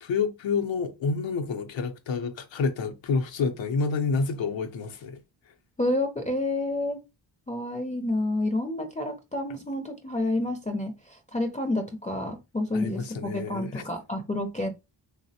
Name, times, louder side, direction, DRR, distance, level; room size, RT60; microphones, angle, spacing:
voice 1, 0.1-5.2 12.7-13.8, left 4 dB, 85° left, 0.6 m, -28 dB
voice 2, 5.8-7.0 7.5-13.1 13.3-14.7, left 1 dB, 20° left, 0.4 m, -29 dB
3.1 x 2.0 x 2.7 m
wide cardioid pair, 115°, 45 cm